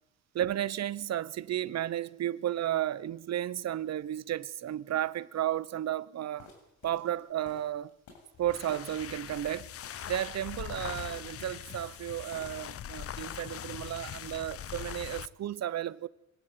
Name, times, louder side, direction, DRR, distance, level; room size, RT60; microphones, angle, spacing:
voice 1, 0.3-6.5 6.8-7.9 8.4-9.7 10.1-16.1, right 12 dB, 60° right, 0.9 m, -33 dB
sound 1, 6.4-12.8 13.0-13.5, left 4 dB, 75° left, 7.3 m, -56 dB
sound 2, 8.3-15.4, left 10 dB, 50° left, 0.8 m, -41 dB
24.0 x 17.5 x 9.3 m
cardioid pair, 90°, 30 cm